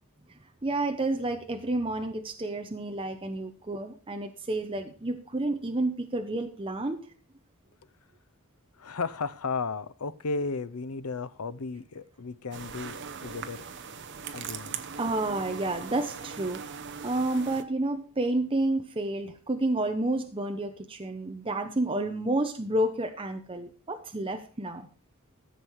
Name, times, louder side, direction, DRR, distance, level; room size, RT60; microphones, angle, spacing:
voice 1, 0.6-7.0 15.0-16.6 17.0-24.9, right 2 dB, 25° right, 0.8 m, -30 dB
voice 2, 8.8-13.6 14.3-14.8, left 4 dB, 90° left, 0.7 m, -34 dB
sound 1, 12.5-17.6, right 6 dB, 55° right, 0.9 m, -40 dB
14.0 x 7.5 x 4.7 m
head